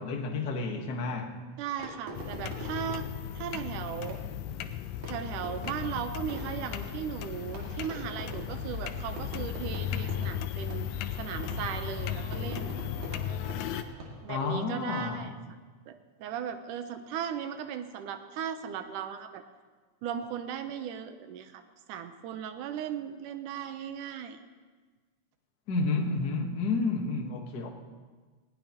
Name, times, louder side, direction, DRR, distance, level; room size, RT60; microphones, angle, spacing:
voice 1, 0.0-1.4 14.3-15.3 25.7-27.7, left 3 dB, 55° left, 2 dB, 1.2 m, -30 dB
voice 2, 1.6-3.1 3.3-4.2 5.0-10.9 11.2-12.7 14.2-15.3 15.9-19.4 20.0-21.6 21.9-24.4, right 8 dB, 85° right, 8 dB, 2.3 m, -37 dB
Fireworks, 1.8-14.5, right 2 dB, 65° right, 3.5 m, -45 dB
sound 1, 2.1-13.8, left 10 dB, 75° left, 1.8 m, -36 dB
19.5 x 17.0 x 2.9 m, 1.4 s
omnidirectional pair, 3.7 m